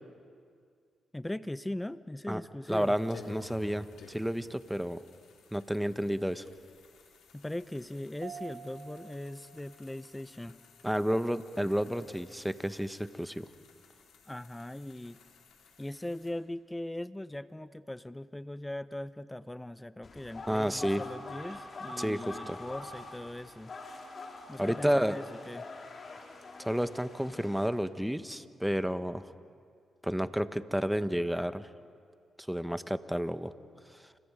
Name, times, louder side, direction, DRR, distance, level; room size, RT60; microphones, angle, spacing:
voice 1, 1.1-2.9 7.3-10.6 14.3-15.2 15.8-23.7 24.5-25.7, left 1 dB, 15° left, 16 dB, 0.8 m, -40 dB
sound 1, 2.6-16.3, left 3 dB, 75° left, 4.1 m, -56 dB
voice 2, 2.7-5.0 5.5-6.4 10.8-13.5 20.5-21.0 22.0-22.6 24.6-25.2 26.6-29.3 30.0-31.7 32.5-33.5, equal, 5° right, 12 dB, 1.2 m, -31 dB
Mallet percussion, 8.2-10.7, right 7 dB, 70° right, 1.9 m, -49 dB
sound 2, 20.0-27.7, left 3 dB, 50° left, 3.9 m, -45 dB
29.5 x 27.0 x 5.2 m, 2.2 s
hypercardioid pair, 40°, 0 cm